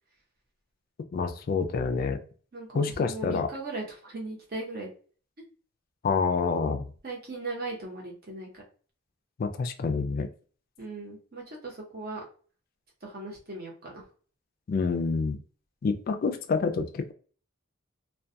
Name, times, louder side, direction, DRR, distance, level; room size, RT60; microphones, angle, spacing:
voice 1, 1.1-2.2 2.7-3.5 6.0-6.9 9.4-10.3 14.7-15.4 15.8-17.1, left 4 dB, 45° left, 7 dB, 0.3 m, -27 dB
voice 2, 2.5-4.9 7.0-8.6 10.8-12.2 13.0-14.0, right 2 dB, 45° right, -2 dB, 0.8 m, -38 dB
2.2 x 2.2 x 2.6 m, 0.40 s
head